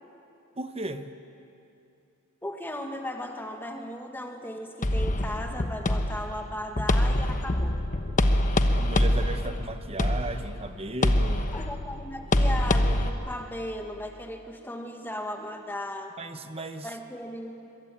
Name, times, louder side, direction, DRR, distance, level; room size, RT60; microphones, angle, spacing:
voice 1, 0.6-1.1 8.7-11.5 16.2-16.9, right 2 dB, 25° right, 9 dB, 1.1 m, -36 dB
voice 2, 2.4-7.7 11.5-16.1 16.8-17.7, left 1 dB, 10° left, 3 dB, 1.9 m, -36 dB
sound 1, 4.8-13.1, left 1 dB, 35° left, 1.1 m, -25 dB
22.5 x 21.5 x 8.7 m, 2.7 s
head